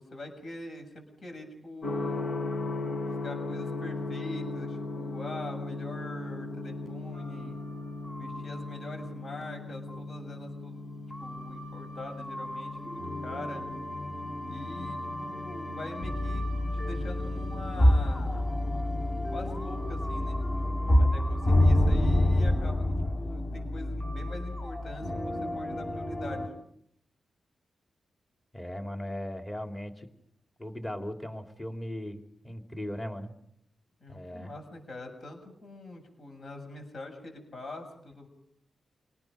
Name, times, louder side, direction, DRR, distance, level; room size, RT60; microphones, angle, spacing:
voice 1, 0.0-2.4 3.2-7.6 8.2-13.6 14.5-16.5 16.7-18.6 19.3-20.4 21.0-26.5 34.0-38.3, left 2 dB, 55° left, 4 dB, 7.5 m, -43 dB
Gong, 1.8-19.7, left 2 dB, 75° left, 3.7 m, -38 dB
sound 1, 7.1-8.7 9.0-9.1 9.9-10.0 11.1-26.5, left 1 dB, 35° left, 5.0 m, -29 dB
voice 2, 28.5-30.1 30.6-33.3 34.1-34.5, left 1 dB, 20° left, 4 dB, 3.4 m, -38 dB
28.5 x 19.5 x 5.3 m, 0.73 s
cardioid pair, 90°, 0 cm